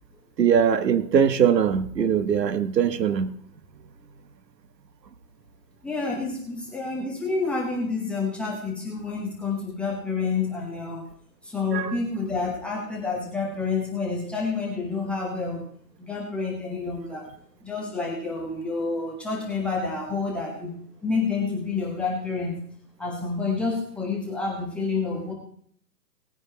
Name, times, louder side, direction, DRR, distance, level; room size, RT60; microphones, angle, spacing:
voice 1, 0.4-3.3 11.7-11.9, right 7 dB, 80° right, 1.4 m, -21 dB
voice 2, 5.8-11.1 11.4-15.6 16.0-17.3 17.6-20.8 21.0-22.6 23.0-25.3, left 4 dB, ahead, 0.8 m, -29 dB
18.5 x 9.6 x 3.3 m
hypercardioid pair, 155°, 49 cm